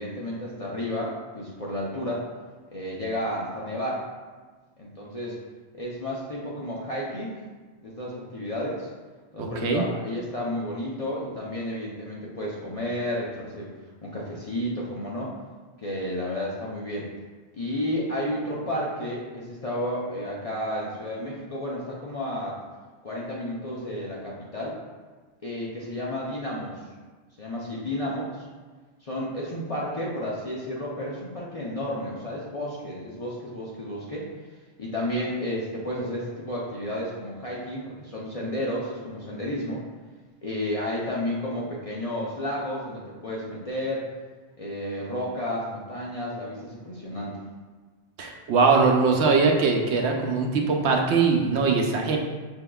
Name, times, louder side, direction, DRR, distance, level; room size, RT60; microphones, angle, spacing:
voice 1, 0.0-2.3 2.7-4.0 4.8-5.4 5.7-7.3 7.8-8.9 9.3-13.7 14.0-15.3 15.8-17.1 17.6-22.6 23.0-24.8 25.4-26.8 27.4-28.5 29.0-34.3 34.8-39.8 40.4-44.1 44.6-47.3, left 1 dB, 40° left, -5 dB, 0.6 m, -32 dB
voice 2, 9.4-9.8 48.2-52.2, right 4 dB, 85° right, 2 dB, 0.9 m, -21 dB
6.2 x 3.6 x 2.3 m, 1.4 s
omnidirectional pair, 1.1 m